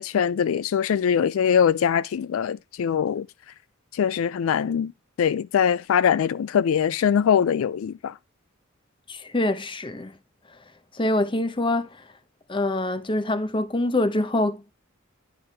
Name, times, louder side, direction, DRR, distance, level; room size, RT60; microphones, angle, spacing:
voice 1, 0.0-3.3 3.9-4.9 5.2-8.2, left 8 dB, 75° left, 0.3 m, -22 dB
voice 2, 9.1-10.1 10.9-11.9 12.5-14.7, left 1 dB, 25° left, 0.8 m, -25 dB
10.0 x 3.4 x 5.5 m
head